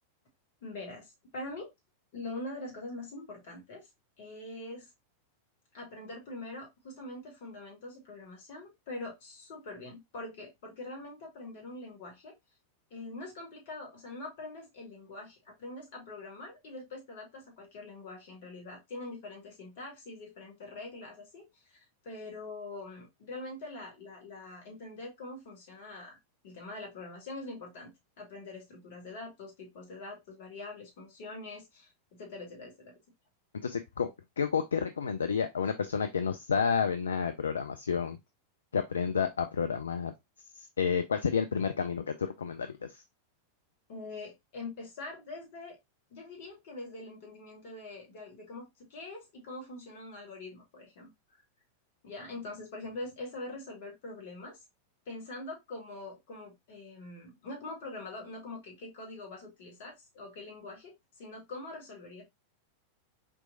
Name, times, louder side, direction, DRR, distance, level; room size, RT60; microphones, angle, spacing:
voice 1, 0.6-1.7 2.1-3.9 4.2-4.9 5.7-12.3 12.9-26.2 26.4-27.9 28.2-31.9 32.2-33.0 43.9-45.8 46.1-51.1 52.0-54.6 55.0-62.2, left 2 dB, 50° left, 1.5 m, -44 dB
voice 2, 33.6-34.1 34.4-38.2 38.7-40.1 40.5-43.0, left 6 dB, 70° left, 0.3 m, -30 dB
4.5 x 3.1 x 2.5 m
figure-of-eight pair, 90°, 0 cm